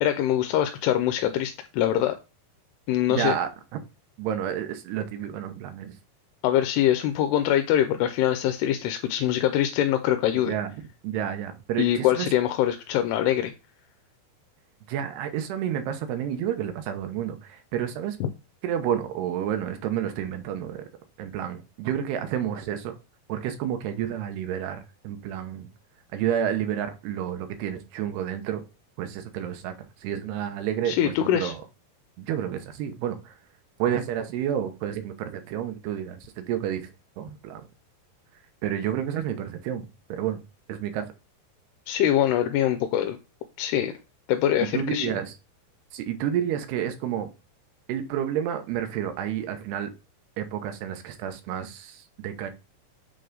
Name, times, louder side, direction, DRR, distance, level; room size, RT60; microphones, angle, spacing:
voice 1, 0.0-2.2 2.9-3.3 6.4-10.5 11.8-13.5 18.2-18.3 30.9-31.5 41.9-43.2 43.6-43.9 44.3-45.1, left 11 dB, 85° left, 2.7 m, -23 dB
voice 2, 3.1-3.8 4.2-5.9 10.4-10.8 11.0-12.3 14.9-18.2 18.6-20.8 21.2-23.0 23.3-24.8 25.0-25.7 26.1-28.6 29.0-31.6 32.2-33.3 33.8-36.9 37.2-37.7 38.6-40.4 40.7-41.1 44.7-45.3 45.9-47.3 47.9-49.9 50.4-52.5, right 9 dB, 90° right, 3.0 m, -30 dB
8.3 x 3.3 x 3.8 m
omnidirectional pair, 4.6 m